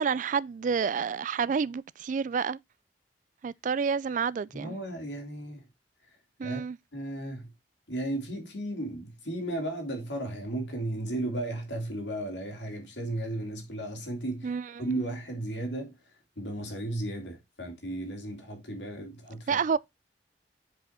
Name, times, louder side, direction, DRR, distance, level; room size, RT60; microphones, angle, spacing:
voice 1, 0.0-2.6 3.4-4.8 6.4-6.8 14.4-14.7 19.5-19.8, right 6 dB, 45° right, 0.3 m, -29 dB
voice 2, 4.5-5.6 6.4-6.6 6.9-7.5 7.9-15.9 16.4-19.6, right 1 dB, 85° left, 2.7 m, -35 dB
7.7 x 5.0 x 4.3 m
head